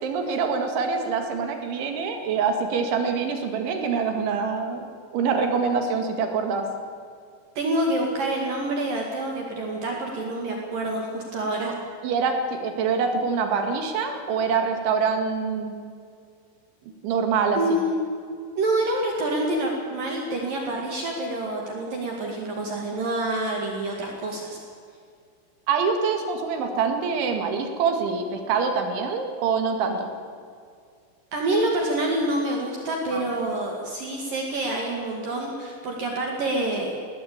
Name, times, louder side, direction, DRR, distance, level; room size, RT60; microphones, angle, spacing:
voice 1, 0.0-6.7 11.6-11.7 12.0-15.7 17.0-17.6 25.7-30.1 33.1-33.3, right 5 dB, 75° right, 5 dB, 4.3 m, -25 dB
voice 2, 7.6-11.8 17.6-18.0 18.6-24.6 31.3-36.9, right 1 dB, 50° right, 0 dB, 3.4 m, -27 dB
20.5 x 17.5 x 8.7 m, 2.2 s
omnidirectional pair, 5.6 m